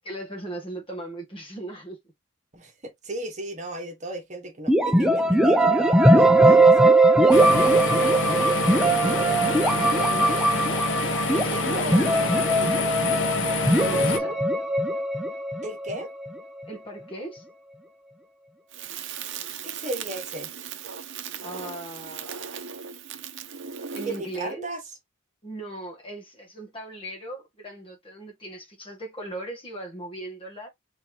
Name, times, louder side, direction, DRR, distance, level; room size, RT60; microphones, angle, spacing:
voice 1, 0.0-2.0 7.7-8.1 8.3-9.0 11.3-12.7 13.8-14.4 16.7-17.5 21.4-22.5 23.9-24.7 25.4-30.7, right 1 dB, 25° left, 1.8 m, -38 dB
voice 2, 2.5-6.9 8.0-8.4 9.2-9.5 9.9-10.5 11.5-12.4 15.6-16.1 19.6-20.5 24.0-24.8, right 1 dB, 35° right, 1.5 m, -35 dB
sound 1, 4.7-16.4, right 1 dB, 5° right, 0.6 m, -20 dB
sound 2, 7.3-14.2, left 2 dB, 65° left, 1.1 m, -27 dB
Crackle, 18.7-24.4, right 8 dB, 60° right, 0.7 m, -37 dB
4.4 x 4.1 x 2.9 m
head